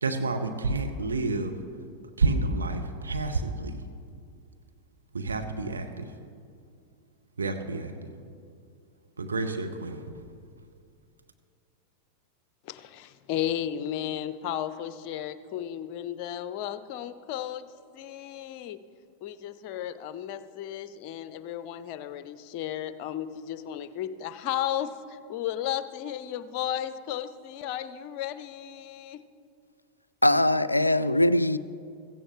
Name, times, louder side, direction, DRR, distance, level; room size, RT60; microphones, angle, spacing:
voice 1, 0.0-1.6 2.2-3.8 5.1-6.1 7.4-8.1 9.2-10.1, right 3 dB, 75° right, 5 dB, 1.0 m, -29 dB
voice 2, 12.6-17.7 17.9-18.8 19.2-29.2, left 11 dB, 45° left, 13 dB, 0.6 m, -34 dB
voice 3, 30.2-31.6, left 1 dB, 85° left, 15 dB, 0.3 m, -21 dB
16.5 x 15.0 x 3.1 m, 2.3 s
figure-of-eight pair, 90°, 0 cm